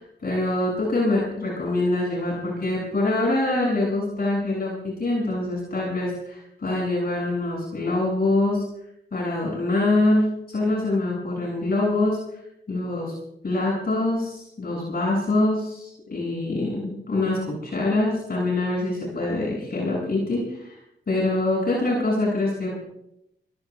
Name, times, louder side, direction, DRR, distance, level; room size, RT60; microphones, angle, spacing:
voice 1, 0.0-8.6 9.1-12.4 12.7-13.1 13.4-20.8 21.1-22.8, left 2 dB, 55° left, -5 dB, 7.9 m, -24 dB
26.0 x 19.0 x 2.6 m, 0.80 s
cardioid pair, 70°, 19 cm